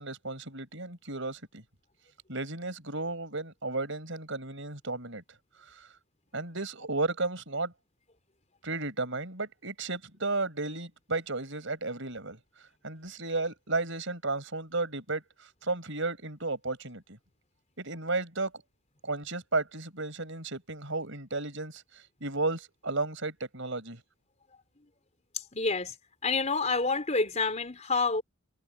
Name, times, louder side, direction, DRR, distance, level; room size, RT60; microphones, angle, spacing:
voice 1, 0.0-1.6 2.3-5.2 6.3-7.7 8.6-12.4 12.8-15.2 15.6-17.2 17.8-18.5 19.0-24.0, right 3 dB, 60° right, 7.1 m, -33 dB
voice 2, 25.3-26.0 26.2-28.2, left 3 dB, 30° left, 3.8 m, -28 dB
head